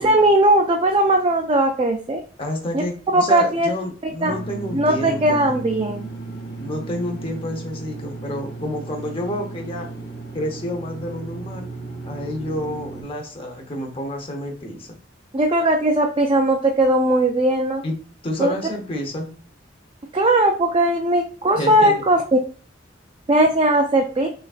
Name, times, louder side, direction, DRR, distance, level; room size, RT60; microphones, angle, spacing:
voice 1, 0.0-2.2 3.1-3.7 4.0-4.3 4.7-6.1 15.3-17.8 18.4-18.5 20.1-22.4 23.3-24.3, right 1 dB, 30° right, 2 dB, 0.4 m, -18 dB
voice 2, 2.4-5.4 6.6-9.9 10.3-11.7 12.0-14.9 17.8-18.0 18.2-19.4 21.5-22.0, left 1 dB, 30° left, 2 dB, 0.8 m, -29 dB
sound 1, 4.2-13.0, right 3 dB, 60° left, 1.0 m, -35 dB
6.0 x 2.4 x 2.4 m, 0.40 s
head